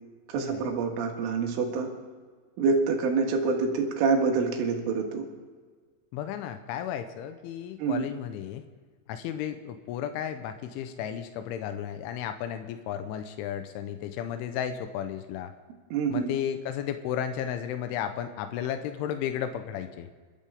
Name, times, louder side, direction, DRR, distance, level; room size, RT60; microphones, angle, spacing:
voice 1, 0.3-1.9 2.6-5.3 7.8-8.1 15.9-16.3, right 4 dB, 85° right, 2 dB, 4.3 m, -26 dB
voice 2, 6.1-8.6 9.1-15.5 16.1-20.1, left 9 dB, 90° left, 8 dB, 3.3 m, -33 dB
28.0 x 13.0 x 3.6 m, 1.5 s
omnidirectional pair, 5.5 m